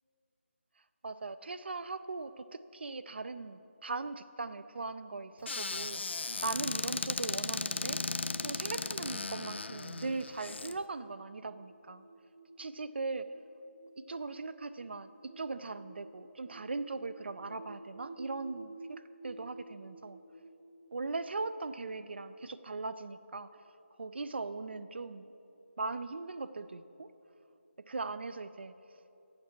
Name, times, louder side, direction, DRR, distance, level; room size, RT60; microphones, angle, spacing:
voice 1, 1.0-8.0 8.4-12.1 12.6-13.3 14.0-20.2 20.9-23.6 24.0-25.3 25.8-27.1 27.8-28.7, right 3 dB, 55° right, 12 dB, 0.4 m, -39 dB
Squeak / Cupboard open or close, 5.5-10.7, left 3 dB, 65° left, 0.4 m, -36 dB
sound 1, 7.5-23.3, right 3 dB, 40° right, 0.8 m, -53 dB
11.5 x 8.5 x 4.5 m, 2.9 s
figure-of-eight pair, 155°, 7 cm